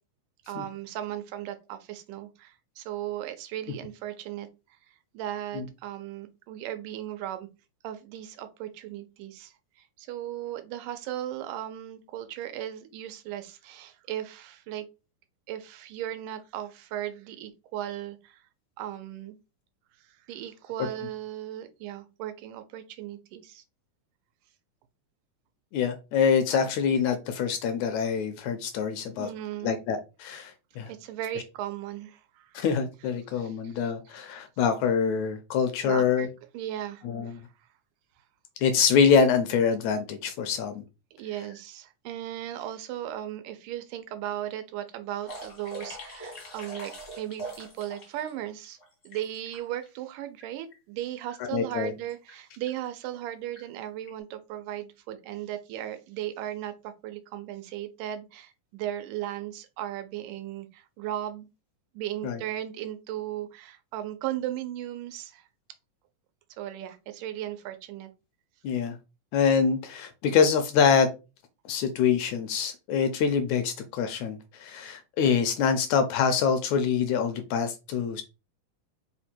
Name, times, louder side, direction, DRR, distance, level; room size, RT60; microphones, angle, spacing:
voice 1, 0.5-4.5 5.1-7.5 7.8-14.9 15.5-18.4 18.8-19.4 20.0-23.6 29.2-29.8 30.9-32.6 33.3-33.8 35.8-36.3 36.5-37.4 41.1-48.8 49.0-61.5 61.9-65.5 66.6-68.1, right 12 dB, 90° right, 2.2 m, -37 dB
voice 2, 25.7-29.3 29.6-30.9 32.5-36.3 37.0-37.4 38.6-40.8 51.5-51.9 62.2-62.4 68.6-69.0 69.3-71.1 71.7-78.2, left 6 dB, 80° left, 1.8 m, -25 dB
sound 1, 45.3-48.3 48.6-49.9 50.4-50.5 50.7-51.0 51.3-51.4 52.1-52.4 52.7-52.9 53.5-53.6 54.1-54.2, right 1 dB, 55° left, 0.8 m, -42 dB
5.1 x 2.2 x 4.2 m
omnidirectional pair, 3.6 m